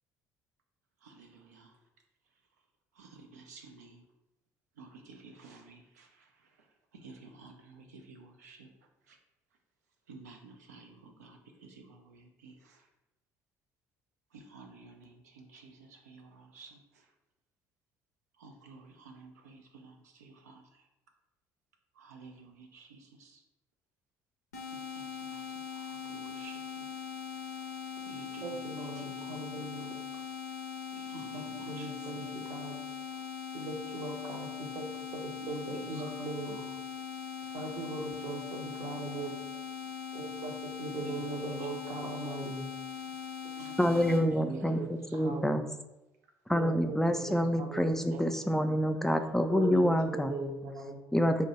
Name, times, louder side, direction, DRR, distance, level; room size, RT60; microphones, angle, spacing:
voice 1, 1.0-1.8 3.0-4.0 4.8-6.3 6.9-8.7 9.1-9.2 10.1-12.8 14.3-17.1 18.4-20.8 22.0-23.4 24.7-26.9 28.0-29.5 30.9-32.4 35.4-36.7 41.0-42.3 43.6-43.7 44.1-45.2 48.1-48.8 49.3-50.2, right 4 dB, 85° right, 4 dB, 0.4 m, -52 dB
sound 1, 24.5-44.2, left 7 dB, 90° left, 0.4 m, -41 dB
voice 2, 28.4-29.9 31.1-32.8 33.5-36.6 37.5-39.3 40.1-42.7 43.6-43.8 44.2-44.9 45.2-45.6 46.5-48.3 49.5-51.0, right 2 dB, 55° right, 2 dB, 0.7 m, -40 dB
voice 3, 43.8-45.7 46.5-50.4 51.1-51.5, equal, 5° left, 7 dB, 0.3 m, -27 dB
2.6 x 2.1 x 4.0 m, 0.95 s
hypercardioid pair, 55°, 9 cm